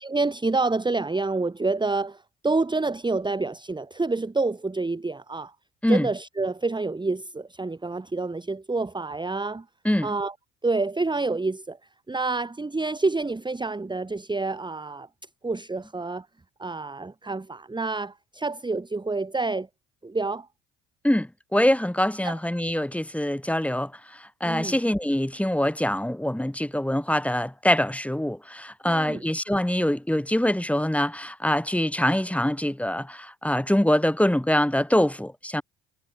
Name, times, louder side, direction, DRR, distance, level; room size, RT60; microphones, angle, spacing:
voice 1, 0.0-5.5 5.9-9.7 10.0-10.3 10.6-11.8 12.1-15.1 15.4-16.3 16.6-19.7 20.0-20.5 22.2-22.4 24.4-24.8 28.9-29.2, right 3 dB, 15° right, 1.6 m, -28 dB
voice 2, 21.0-35.6, left 1 dB, 5° left, 2.9 m, -24 dB
hypercardioid pair, 60°, 35 cm